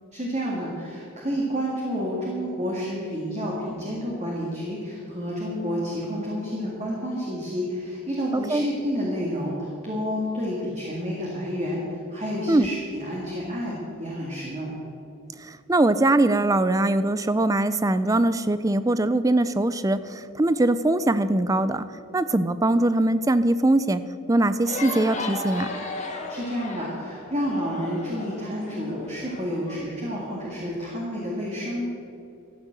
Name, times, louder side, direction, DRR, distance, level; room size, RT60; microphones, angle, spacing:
voice 1, 0.1-14.7 26.3-31.9, equal, 30° right, -4 dB, 2.1 m, -30 dB
voice 2, 8.3-8.6 12.5-12.7 15.4-21.8 22.1-24.0 24.3-25.7, right 2 dB, 15° right, 13 dB, 0.4 m, -22 dB
sound 1, 24.7-29.8, left 2 dB, 35° left, 2.1 m, -35 dB
14.0 x 9.2 x 7.6 m, 2.7 s
head